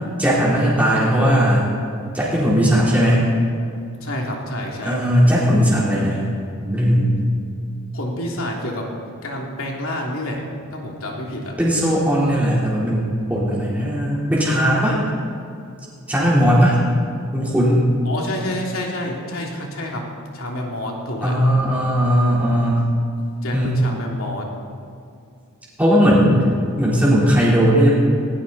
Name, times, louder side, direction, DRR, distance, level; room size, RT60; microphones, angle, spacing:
voice 1, 0.2-1.7 2.1-3.2 4.8-6.2 6.6-7.1 11.6-15.0 16.1-16.8 17.3-17.8 21.2-22.9 23.5-23.7 25.8-26.4 26.8-27.9, equal, 5° right, -8 dB, 3.8 m, -17 dB
voice 2, 4.0-5.0 7.9-8.9 9.2-10.4 10.7-11.5 18.0-20.1 20.3-21.4 23.4-24.5, left 1 dB, 65° left, -1 dB, 2.9 m, -28 dB
19.5 x 17.5 x 4.2 m, 2.4 s
head